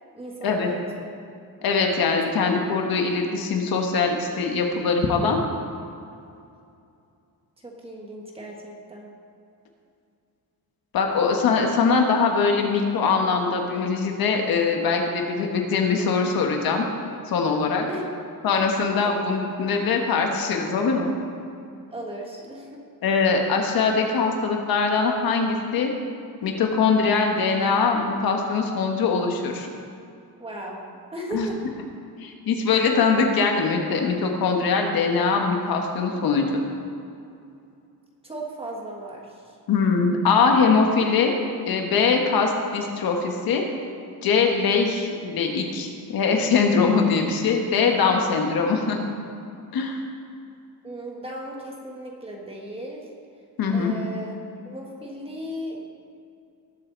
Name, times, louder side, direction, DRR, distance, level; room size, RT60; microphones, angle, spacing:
voice 1, 0.1-1.1 7.6-9.1 17.9-18.1 21.9-22.8 30.4-30.8 31.1-31.6 38.2-39.6 50.8-53.1 53.7-54.3 54.6-55.8, equal, 15° right, -1 dB, 1.6 m, -36 dB
voice 2, 1.6-5.4 10.9-16.9 17.3-17.9 18.4-21.1 23.0-25.9 26.4-29.7 31.3-31.5 32.2-36.6 39.7-41.3 41.6-43.6 44.2-49.0 49.7-50.0 53.6-53.9, left 5 dB, 70° left, 2 dB, 1.6 m, -22 dB
19.5 x 8.1 x 4.0 m, 2.5 s
cardioid pair, 180°, 37 cm